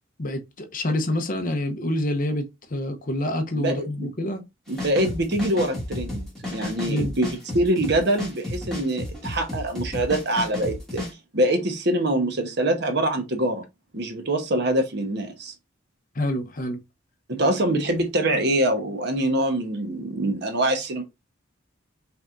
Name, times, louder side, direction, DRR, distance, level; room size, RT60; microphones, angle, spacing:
voice 1, 0.2-4.4 6.9-7.1 16.1-16.8, left 1 dB, 45° left, 0.8 m, -27 dB
voice 2, 3.5-4.1 4.7-7.3 7.5-11.0 11.3-13.6 13.9-15.5 17.3-21.0, right 1 dB, 60° right, 1.1 m, -24 dB
sound 1, 4.7-11.1, left 1 dB, 5° left, 2.2 m, -32 dB
5.7 x 3.5 x 2.6 m
head